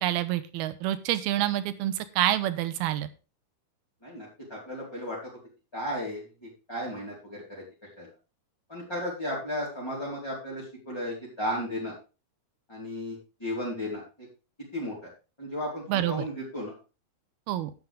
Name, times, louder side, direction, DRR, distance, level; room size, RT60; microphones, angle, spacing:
voice 1, 0.0-3.1 15.9-16.3 17.5-17.7, right 13 dB, 80° right, 12 dB, 2.7 m, -27 dB
voice 2, 4.0-5.2 5.7-6.2 6.7-7.6 8.0-8.1 8.7-11.9 12.7-14.0 14.7-14.9 15.4-16.7, left 1 dB, 5° left, -7 dB, 4.2 m, -34 dB
12.0 x 9.4 x 3.7 m, 0.31 s
omnidirectional pair, 4.6 m